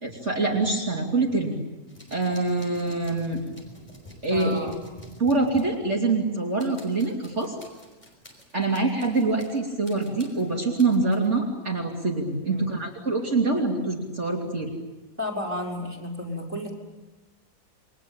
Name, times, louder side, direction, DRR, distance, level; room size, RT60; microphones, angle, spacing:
voice 1, 0.0-1.6 2.1-3.4 4.2-4.6 5.2-7.5 8.5-14.7, right 3 dB, 45° right, -1 dB, 3.3 m, -25 dB
sound 1, 1.9-6.3 6.6-9.6 9.8-11.3, equal, 25° left, 5.7 m, -48 dB
voice 2, 4.2-4.7 12.4-12.7 15.2-16.7, left 1 dB, 5° right, -1 dB, 5.0 m, -32 dB
29.5 x 23.0 x 8.8 m, 1.1 s
omnidirectional pair, 1.8 m